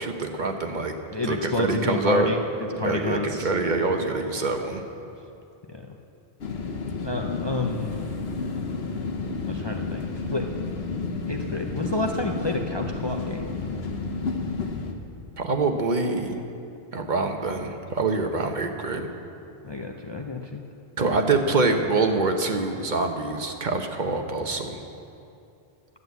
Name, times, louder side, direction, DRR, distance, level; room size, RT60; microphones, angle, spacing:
voice 1, 0.0-1.0 1.2-2.3 2.7-4.8 15.4-16.4 16.9-19.1 21.0-24.8, right 3 dB, 50° right, 4 dB, 0.9 m, -25 dB
voice 2, 1.1-2.4 2.8-3.5 5.7-5.9 7.0-8.0 9.5-10.5 11.3-13.5 19.6-20.6, left 2 dB, 30° left, 2 dB, 0.6 m, -29 dB
sound 1, 6.4-14.9, left 4 dB, 75° left, 1.2 m, -31 dB
11.0 x 7.8 x 8.0 m, 2.6 s
omnidirectional pair, 1.0 m